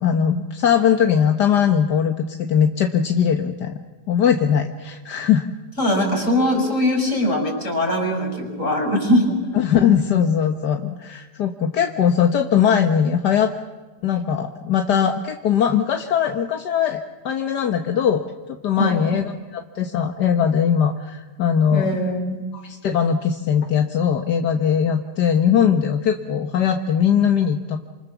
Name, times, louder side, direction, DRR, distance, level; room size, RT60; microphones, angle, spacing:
voice 1, 0.0-3.7 4.1-5.5 9.5-13.5 14.0-17.0 17.3-21.9 22.5-27.8, left 8 dB, 80° left, 5 dB, 1.8 m, -20 dB
voice 2, 5.8-9.4 18.8-19.2 21.7-22.4, left 1 dB, 50° left, 2 dB, 6.8 m, -21 dB
28.5 x 27.0 x 7.2 m, 1.3 s
omnidirectional pair, 1.8 m